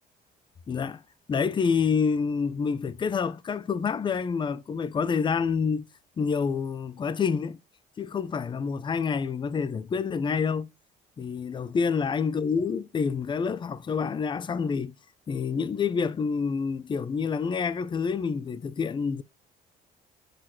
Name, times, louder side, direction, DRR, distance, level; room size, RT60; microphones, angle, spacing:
voice 1, 0.7-1.0 1.3-5.8 6.2-7.6 8.0-10.7 11.2-14.9 15.3-19.2, left 5 dB, 30° left, 0.6 m, -27 dB
7.8 x 2.9 x 5.9 m
cardioid pair, 110°, 17 cm